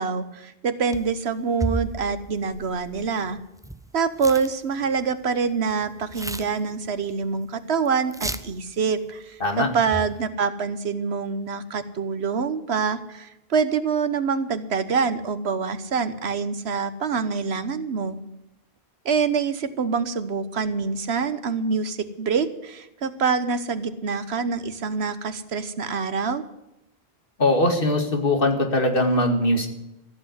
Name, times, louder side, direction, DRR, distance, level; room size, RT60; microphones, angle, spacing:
voice 1, 0.0-3.4 3.9-18.2 19.0-26.4, right 5 dB, 80° right, 12 dB, 1.3 m, -26 dB
sound 1, 0.9-1.2 1.6-3.9 4.2-4.5 4.8-5.3 5.7-7.1 7.4-7.5 7.8-7.9 8.1-8.6 9.8-10.2, right 1 dB, 5° right, 0.3 m, -33 dB
voice 2, 27.4-29.7, left 1 dB, 60° left, 4 dB, 2.3 m, -21 dB
14.5 x 7.9 x 9.5 m, 0.90 s
omnidirectional pair, 1.1 m